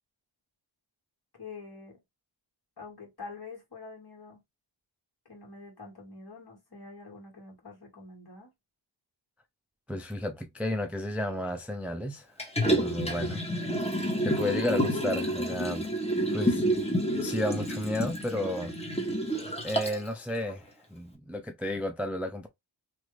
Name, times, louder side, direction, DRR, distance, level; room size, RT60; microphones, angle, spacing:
voice 1, 1.4-2.0 2.8-4.4 5.3-8.5, left 4 dB, 50° left, 1.8 m, -46 dB
voice 2, 9.9-12.3 12.6-13.4 14.2-15.9 16.3-16.6 17.2-18.7 19.6-22.5, left 1 dB, 5° right, 0.4 m, -32 dB
Liquid, 12.4-20.1 20.5-20.6, equal, 15° left, 1.0 m, -29 dB
2.9 x 2.4 x 3.1 m
wide cardioid pair, 60°, 49 cm